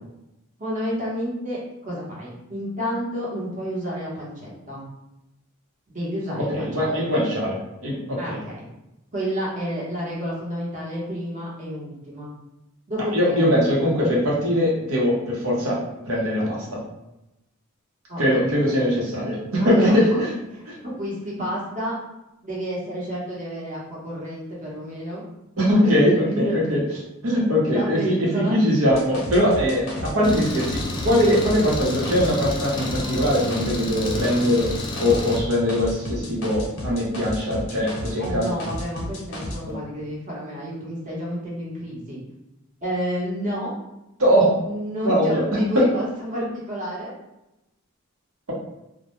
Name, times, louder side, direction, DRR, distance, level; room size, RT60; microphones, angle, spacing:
voice 1, 0.6-4.8 5.9-7.1 8.2-8.7 9.1-12.3 12.9-13.5 18.1-18.5 19.6-20.2 20.5-20.6 21.0-21.9 22.4-25.2 25.8-26.5 27.7-28.5 29.7-30.1 38.2-42.2 42.8-43.7 44.6-47.2, equal, 35° right, -6 dB, 0.9 m, -30 dB
voice 2, 6.5-8.4 13.1-15.8 16.0-16.8 18.2-20.3 20.7-20.8 25.6-26.8 27.2-34.7 35.0-38.5 39.7-39.8 44.2-44.6 45.0-45.4 45.7-45.8, equal, 85° right, -4 dB, 0.9 m, -21 dB
sound 1, 28.9-33.8 34.0-39.6, left 1 dB, 75° left, 0.6 m, -33 dB
Engine, 30.2-35.4, left 1 dB, 20° left, 0.3 m, -31 dB
2.2 x 2.1 x 2.9 m, 0.92 s
head